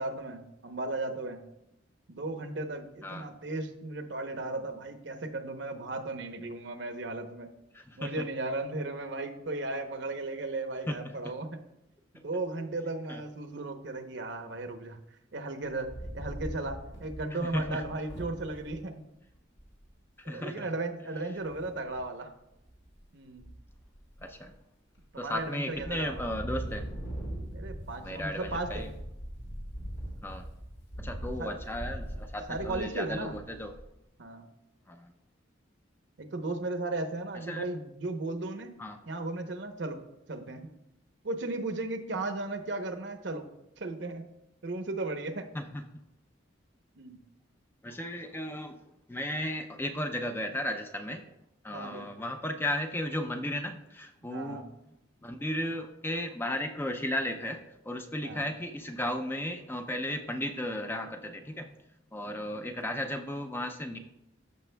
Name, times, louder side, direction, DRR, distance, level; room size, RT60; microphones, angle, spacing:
voice 1, 0.0-1.4 2.1-7.5 8.0-11.6 12.2-15.0 15.3-19.1 20.2-22.3 23.1-23.5 25.1-26.2 27.4-28.9 31.2-31.6 32.5-33.4 34.2-34.4 36.2-38.7 39.1-40.0 40.3-40.6 41.2-43.4 43.8-44.3 44.6-45.5 47.0-47.2 51.7-52.1 54.2-54.7 58.2-58.4, right 2 dB, 60° right, 7 dB, 0.8 m, -36 dB
voice 2, 7.7-8.2 10.9-11.0 11.2-11.3 13.1-13.2 17.4-17.8 20.2-20.7 24.2-24.5 25.2-26.9 28.0-28.9 30.2-30.4 31.0-33.7 34.9-35.1 37.5-37.6 38.8-39.0 45.5-45.8 47.8-48.8 49.1-51.2 51.6-54.6 55.2-57.6 57.8-61.7 62.1-64.0, left 1 dB, 10° left, 5 dB, 0.4 m, -35 dB
Wind, 15.7-18.8 19.3-19.4 19.6-20.0 21.4-22.0 22.5-23.0 23.3-24.5 25.0-25.4 25.7-34.0, right 1 dB, 80° left, 3.4 m, -41 dB
15.0 x 5.9 x 2.2 m, 0.87 s
head